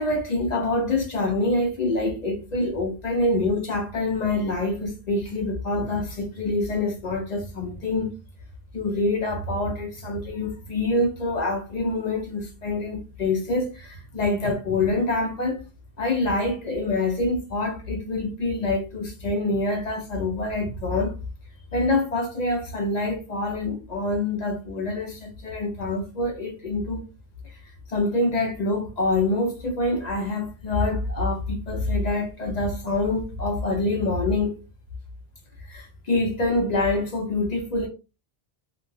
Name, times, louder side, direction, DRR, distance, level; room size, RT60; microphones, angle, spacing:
voice 1, 0.0-8.1 8.7-15.6 16.0-21.1 21.7-27.0 27.4-27.6 27.9-34.6 35.7-37.9, left 2 dB, 50° left, 0.6 m, -26 dB
2.3 x 2.1 x 3.1 m
omnidirectional pair, 1.0 m